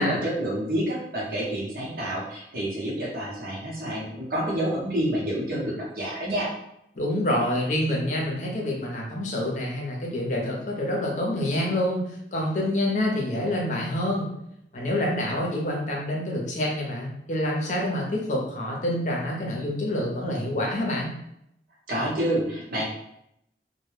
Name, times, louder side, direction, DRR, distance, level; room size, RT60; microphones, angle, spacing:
voice 1, 0.0-6.5 21.9-22.8, right 1 dB, 55° right, -5 dB, 0.8 m, -28 dB
voice 2, 7.0-14.3 14.7-21.1, left 1 dB, 45° left, -2 dB, 0.6 m, -27 dB
2.1 x 2.1 x 3.2 m, 0.78 s
head